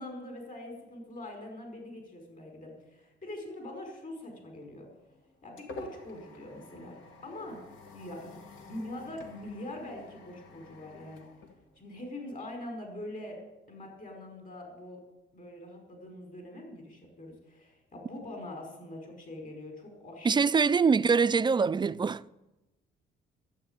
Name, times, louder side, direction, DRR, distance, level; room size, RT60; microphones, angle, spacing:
voice 1, 0.0-4.9 5.4-7.6 7.9-8.4 8.7-11.3 11.8-15.0 15.3-20.4, left 1 dB, 40° left, 5.0 m, -43 dB
sound 1, 4.8-12.3, left 3 dB, 80° left, 1.7 m, -50 dB
voice 2, 20.2-22.3, right 5 dB, 25° right, 0.3 m, -24 dB
12.0 x 8.2 x 8.9 m
cardioid pair, 90°, 20 cm